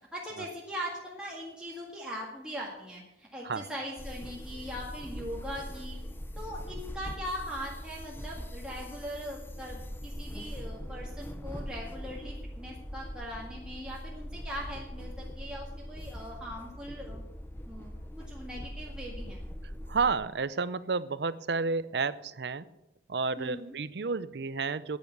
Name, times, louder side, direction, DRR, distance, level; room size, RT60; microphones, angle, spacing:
voice 1, 0.1-6.0 6.4-17.2 17.7-17.9 18.3-19.4 23.4-23.8, equal, 5° right, -4 dB, 1.9 m, -40 dB
sound 1, 4.0-20.1, equal, 10° left, 0.7 m, -41 dB
voice 2, 19.9-22.6 23.1-25.0, right 4 dB, 70° right, 16 dB, 0.6 m, -31 dB
10.0 x 9.5 x 8.0 m, 0.90 s
head